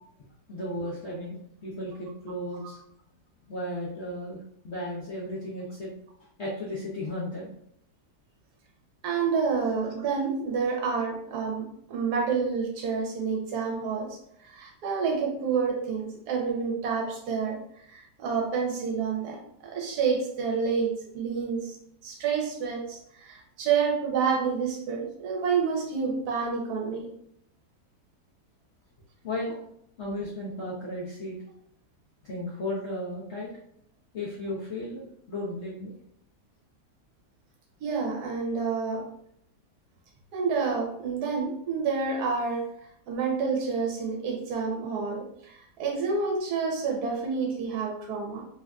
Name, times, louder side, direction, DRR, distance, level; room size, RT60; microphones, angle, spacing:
voice 1, 0.5-2.8 3.5-4.4 4.6-5.9 6.4-7.5 29.2-29.5 30.0-31.4 32.2-33.5 34.1-35.9, left 1 dB, 60° left, -6 dB, 0.7 m, -34 dB
voice 2, 9.0-17.6 17.9-21.8 22.0-27.1 37.8-39.1 40.3-42.7 43.1-48.5, right 5 dB, 70° right, 1 dB, 1.1 m, -29 dB
3.2 x 2.5 x 2.2 m, 0.68 s
omnidirectional pair, 1.8 m